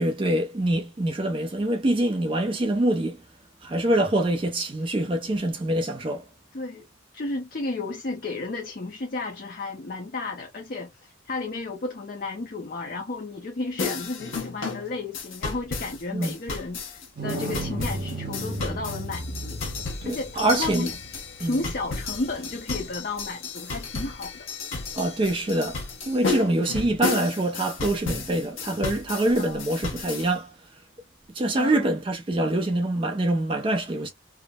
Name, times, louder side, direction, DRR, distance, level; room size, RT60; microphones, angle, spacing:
voice 1, 0.0-3.2 3.6-6.2 16.1-16.3 20.0-20.9 21.4-21.6 24.9-25.8 26.1-30.5 31.3-34.1, right 1 dB, 25° right, 0.4 m, -25 dB
voice 2, 6.5-6.8 7.1-19.6 20.0-20.9 21.4-24.5 29.4-29.6 31.6-31.9, left 3 dB, 45° left, 0.5 m, -33 dB
sound 1, 13.8-30.3, left 4 dB, 85° left, 1.0 m, -33 dB
sound 2, 17.2-22.6 25.7-25.8, right 1 dB, 45° right, 0.9 m, -35 dB
3.4 x 2.0 x 2.2 m
head